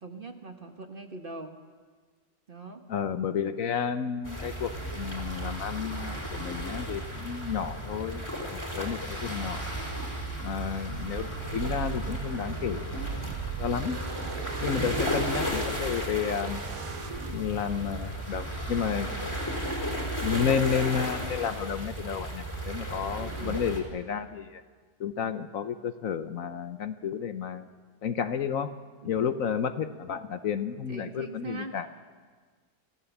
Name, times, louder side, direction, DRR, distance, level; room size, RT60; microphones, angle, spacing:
voice 1, 0.0-1.5 2.5-2.8 23.2-23.6 29.0-29.4 30.9-31.7, right 3 dB, 35° right, 6 dB, 1.2 m, -41 dB
voice 2, 2.9-8.2 8.5-9.7 10.4-13.0 13.6-14.0 14.6-16.6 17.3-19.1 20.2-24.6 25.0-27.7 28.0-28.7 29.0-31.9, left 7 dB, 60° left, 10 dB, 1.2 m, -31 dB
sound 1, 4.2-23.8, equal, 10° left, 3.6 m, -34 dB
sound 2, 10.9-17.3, right 9 dB, 65° right, 1.2 m, -39 dB
25.5 x 15.5 x 7.2 m, 1.5 s
omnidirectional pair, 1.7 m